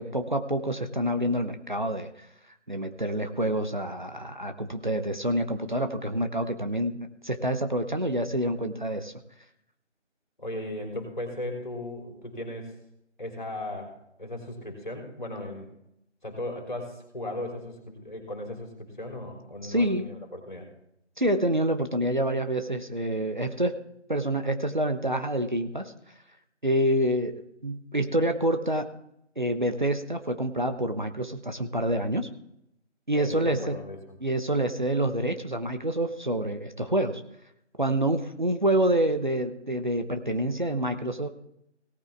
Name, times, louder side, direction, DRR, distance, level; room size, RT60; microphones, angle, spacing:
voice 1, 0.0-2.3 2.7-9.1 19.6-20.1 21.2-23.8 24.1-25.9 26.6-28.9 29.4-32.3 33.1-33.8 34.2-37.2 37.8-41.3, right 1 dB, 40° right, 8 dB, 0.9 m, -27 dB
voice 2, 10.4-12.7 13.2-13.9 14.2-15.7 16.2-20.7 33.1-34.0, left 1 dB, 40° left, 1 dB, 3.6 m, -37 dB
17.5 x 9.0 x 3.4 m, 0.77 s
figure-of-eight pair, 170°, 35 cm